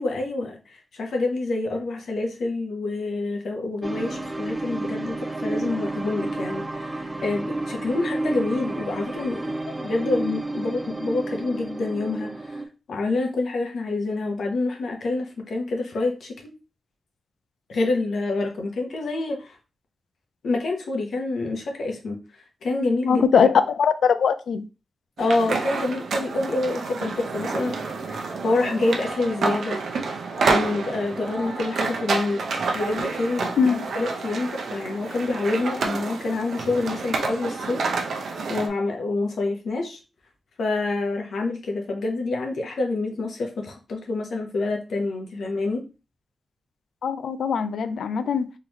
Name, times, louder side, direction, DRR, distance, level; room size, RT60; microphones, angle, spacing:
voice 1, 0.0-12.6 12.9-16.5 17.7-19.6 20.4-23.2 25.2-27.8 28.1-29.8 30.4-32.4 32.7-33.5 33.9-37.8 38.1-40.0 40.6-45.8, left 2 dB, 70° left, 0.9 m, -27 dB
sound 1, 3.8-12.6, right 2 dB, 15° right, 0.3 m, -31 dB
voice 2, 23.1-24.7 33.6-33.9 47.0-48.5, left 6 dB, 90° left, 0.4 m, -21 dB
sound 2, 25.2-38.7, right 4 dB, 80° right, 0.7 m, -29 dB
3.7 x 3.1 x 2.9 m
wide cardioid pair, 175°, 0 cm